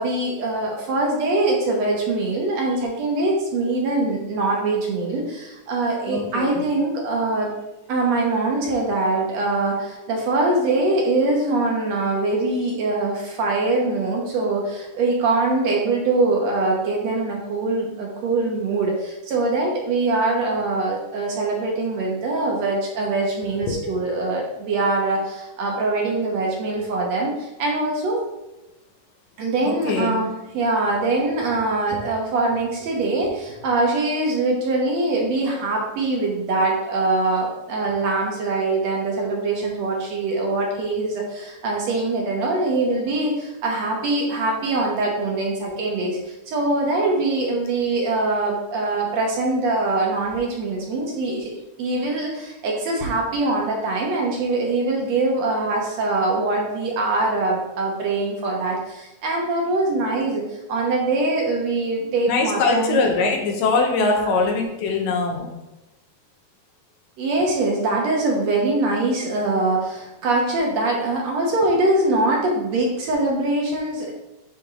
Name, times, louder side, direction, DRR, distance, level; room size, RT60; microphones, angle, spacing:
voice 1, 0.0-7.5 7.9-28.2 29.4-63.1 64.0-64.3 67.2-74.1, right 2 dB, 65° right, -1 dB, 1.9 m, -23 dB
voice 2, 6.1-6.6 23.7-23.8 29.7-30.2 62.3-65.6, left 4 dB, 85° left, 2 dB, 2.6 m, -22 dB
10.0 x 3.6 x 3.6 m, 1.0 s
omnidirectional pair, 3.8 m